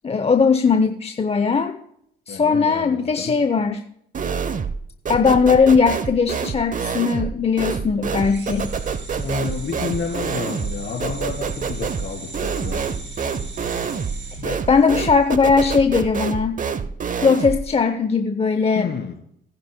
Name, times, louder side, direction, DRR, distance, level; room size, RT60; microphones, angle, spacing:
voice 1, 0.0-1.8 2.3-3.8 5.1-8.7 14.4-16.6 17.2-18.9, left 5 dB, 30° left, 8 dB, 0.7 m, -19 dB
voice 2, 2.3-3.3 9.2-12.8 18.7-19.2, left 6 dB, 50° left, 3 dB, 3.2 m, -30 dB
sound 1, 4.1-4.8 5.1-17.7, right 6 dB, 40° right, 0.8 m, -27 dB
sound 2, 8.2-15.3, right 2 dB, 60° right, 2.9 m, -38 dB
20.5 x 10.5 x 2.2 m, 0.74 s
supercardioid pair, 70°, 21 cm